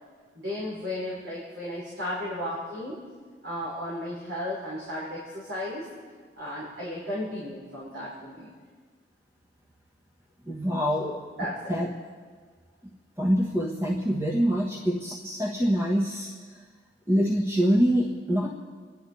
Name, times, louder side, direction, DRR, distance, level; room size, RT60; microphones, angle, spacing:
voice 1, 0.3-3.0 3.4-5.8 6.4-8.5 11.0-11.1 11.4-11.7, left 1 dB, 85° right, -7 dB, 4.9 m, -34 dB
voice 2, 10.5-11.1 11.7-11.9 12.8-12.9 13.2-16.3 17.1-18.5, equal, 15° right, -3 dB, 1.4 m, -25 dB
27.5 x 11.5 x 4.2 m, 1.5 s
head